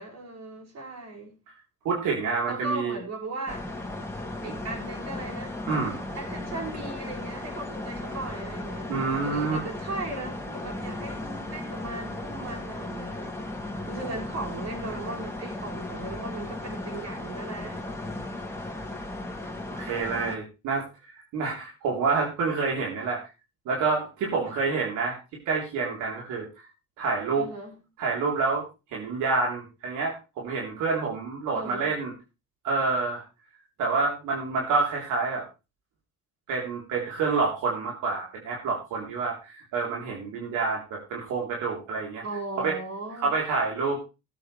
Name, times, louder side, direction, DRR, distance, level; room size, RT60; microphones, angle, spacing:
voice 1, 0.0-1.4 2.5-3.7 4.4-5.6 6.2-8.9 9.2-13.5 13.9-17.9 27.4-27.8 31.5-31.9 42.2-43.3, right 2 dB, 60° right, -1 dB, 6.9 m, -37 dB
voice 2, 1.8-3.0 5.7-6.0 8.9-9.6 19.7-23.2 23.7-25.2 25.5-26.4 27.0-27.5 28.0-28.6 28.9-32.1 32.6-33.2 33.8-35.4 36.5-42.2 42.6-42.8 43.2-44.0, right 4 dB, 90° right, -2 dB, 3.8 m, -28 dB
sound 1, 3.5-20.4, left 2 dB, 10° left, 2.8 m, -36 dB
19.0 x 8.1 x 3.3 m, 0.29 s
cardioid pair, 90°, 30 cm